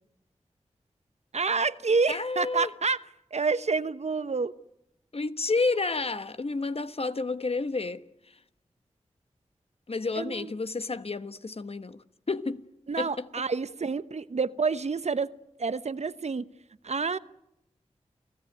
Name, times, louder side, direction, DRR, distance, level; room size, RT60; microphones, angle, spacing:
voice 1, 1.3-3.0 3.3-4.5 10.2-10.5 12.9-15.3 15.6-16.5 16.8-17.2, right 4 dB, 65° right, 0.9 m, -28 dB
voice 2, 2.1-2.7 5.1-8.4 9.9-12.6 13.0-13.3, left 3 dB, 55° left, 1.3 m, -30 dB
29.5 x 17.0 x 9.3 m
cardioid pair, 45°, 12 cm